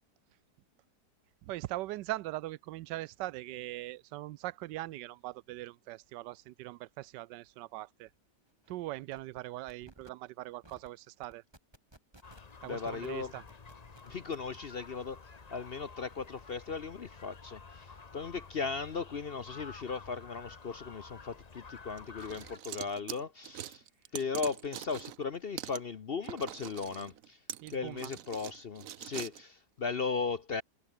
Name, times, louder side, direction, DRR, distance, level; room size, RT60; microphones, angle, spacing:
voice 1, 1.4-8.1 8.7-11.4 12.6-13.4 27.6-28.1, right 17 dB, 85° right, 1.2 m, -41 dB
sound 1, 8.1-8.2 8.5-8.7 9.1-9.4 9.7-10.1 10.6-10.9 11.2-12.5 12.9-13.1 13.5-14.6, right 1 dB, 15° right, 3.3 m, -58 dB
sound 2, 12.2-22.6, left 4 dB, 25° left, 1.0 m, -51 dB
voice 2, 12.7-13.3 14.0-23.8 24.1-27.4 27.7-30.6, left 5 dB, 50° left, 0.8 m, -37 dB
sound 3, 22.0-25.3 25.6-25.8 26.2-29.4, right 11 dB, 60° right, 1.0 m, -43 dB
omnidirectional pair, 1.8 m